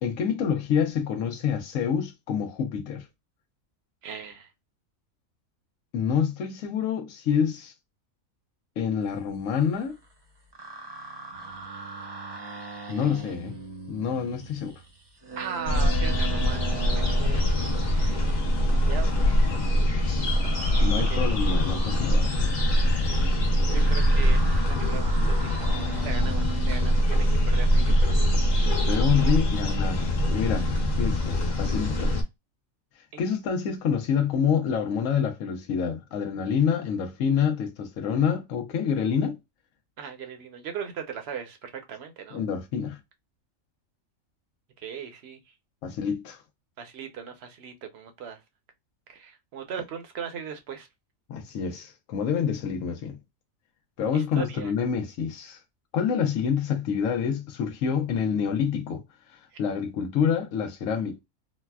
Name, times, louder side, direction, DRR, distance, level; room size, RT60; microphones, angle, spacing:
voice 1, 0.0-3.1 5.9-7.7 8.8-10.0 12.9-13.6 13.9-14.8 20.8-22.4 28.8-32.2 32.9-39.4 42.3-43.0 45.8-46.4 51.3-53.2 54.0-55.6 55.9-61.2, left 7 dB, 75° left, 1.0 m, -27 dB
voice 2, 4.0-4.5 15.4-17.5 17.9-18.3 18.9-19.4 20.9-21.3 23.7-28.3 28.7-28.9 33.1-33.2 40.0-42.4 44.8-45.4 46.8-48.4 49.1-50.9 54.1-54.7, right 7 dB, 60° right, 0.8 m, -39 dB
sound 1, 9.5-10.1 10.4-27.3, right 4 dB, 40° right, 0.4 m, -41 dB
sound 2, 15.7-32.2, equal, 40° left, 0.8 m, -23 dB
4.0 x 2.1 x 2.2 m
omnidirectional pair, 1.4 m